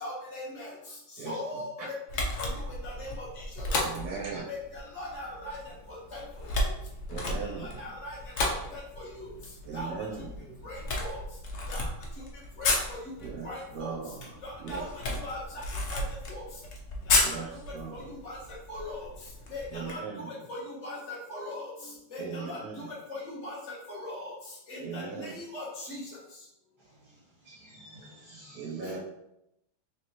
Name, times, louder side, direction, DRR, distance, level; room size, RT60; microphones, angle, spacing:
voice 1, 0.0-0.7 1.3-1.7 2.4-2.5 2.8-3.2 4.5-5.6 5.9-6.2 7.8-8.2 8.5-9.1 9.7-9.9 10.6-11.2 11.7-11.8 12.6-12.7 13.4-13.9 14.7-14.8 15.2-15.4 15.9-16.0 16.3-16.4 18.2-18.4 18.7-19.0 19.5-20.0 20.5-21.7 22.1-22.6 23.1-23.6 23.9-24.2 24.7-25.0 25.3-26.0 28.8-29.0, left 1 dB, 40° left, -5 dB, 1.2 m, -39 dB
Camera, 2.1-19.9, left 2 dB, 90° left, 0.6 m, -34 dB
voice 2, 3.8-4.4 7.1-7.9 9.6-10.7 13.2-15.2 17.2-18.1 19.7-20.4 22.2-22.9 24.8-25.3 28.5-29.0, right 5 dB, 85° right, -4 dB, 1.7 m, -39 dB
voice 3, 26.8-28.8, equal, 30° right, -6 dB, 0.5 m, -53 dB
3.8 x 3.3 x 2.9 m, 0.83 s
omnidirectional pair, 2.3 m